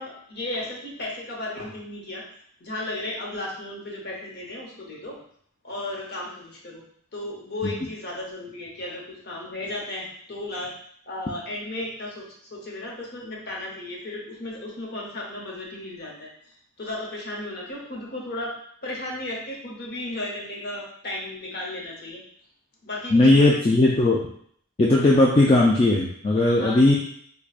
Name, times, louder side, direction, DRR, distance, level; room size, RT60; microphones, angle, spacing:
voice 1, 0.0-2.2 2.6-5.2 5.6-6.8 7.1-10.7 11.1-16.3 16.8-22.2 22.8-23.5 26.6-27.0, left 1 dB, 50° left, -2 dB, 0.9 m, -34 dB
voice 2, 23.1-24.2 24.8-27.0, left 2 dB, 25° left, -3 dB, 0.3 m, -18 dB
4.7 x 2.2 x 2.4 m, 0.62 s
head